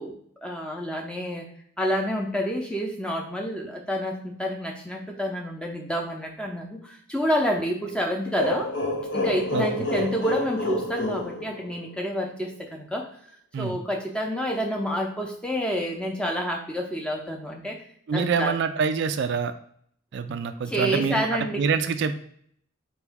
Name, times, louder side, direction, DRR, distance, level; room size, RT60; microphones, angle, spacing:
voice 1, 0.0-1.5 1.8-8.7 9.1-13.1 13.6-17.8 18.1-18.6 20.7-21.6, equal, 5° left, 1 dB, 0.6 m, -29 dB
sound 1, 8.4-12.1, left 1 dB, 55° left, 0.6 m, -28 dB
voice 2, 18.1-19.5 20.1-22.2, right 6 dB, 55° right, 9 dB, 0.3 m, -26 dB
4.4 x 2.9 x 3.5 m, 0.65 s
head